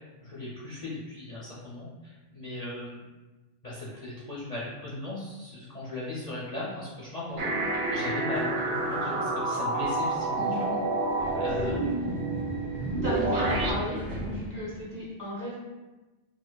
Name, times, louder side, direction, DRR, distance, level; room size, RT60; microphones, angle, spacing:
voice 1, 0.2-3.0 3.6-7.5 7.9-10.7 11.4-11.8 13.3-14.0, left 2 dB, 45° left, -6 dB, 0.6 m, -38 dB
Subway metro underground, 7.3-14.8, right 1 dB, 50° right, 1.0 m, -39 dB
sound 1, 7.4-13.7, right 2 dB, 75° right, 0.8 m, -29 dB
voice 2, 10.4-10.8 11.3-11.9 13.0-15.7, equal, 20° right, -8 dB, 1.1 m, -35 dB
4.6 x 2.1 x 2.2 m, 1.1 s
omnidirectional pair, 1.1 m